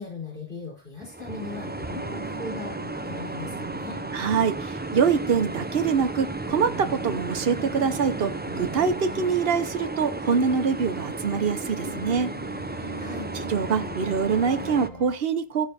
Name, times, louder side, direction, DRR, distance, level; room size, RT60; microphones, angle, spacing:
voice 1, 0.0-4.0 13.0-13.3, left 3 dB, 60° left, 5.5 m, -39 dB
sound 1, 1.0-14.9, right 2 dB, 15° right, 0.4 m, -34 dB
sound 2, 1.3-15.2, left 1 dB, 40° left, 2.3 m, -42 dB
voice 2, 4.1-12.3 13.4-15.7, right 6 dB, 70° right, 1.2 m, -24 dB
16.0 x 5.6 x 4.2 m
omnidirectional pair, 1.0 m